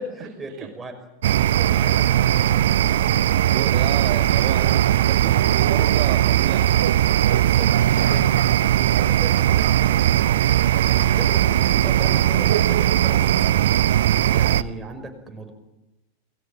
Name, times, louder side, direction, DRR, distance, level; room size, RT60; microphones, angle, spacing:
voice 1, 0.0-2.9 7.3-8.3 8.6-10.1 10.8-13.6 14.3-15.5, right 3 dB, 15° right, 5 dB, 5.9 m, -36 dB
sound 1, 1.2-14.6, right 11 dB, 60° right, 0.8 m, -19 dB
voice 2, 3.5-6.8, right 11 dB, 40° right, 5 dB, 2.1 m, -31 dB
29.0 x 21.0 x 7.6 m, 0.99 s
figure-of-eight pair, 90°, 0 cm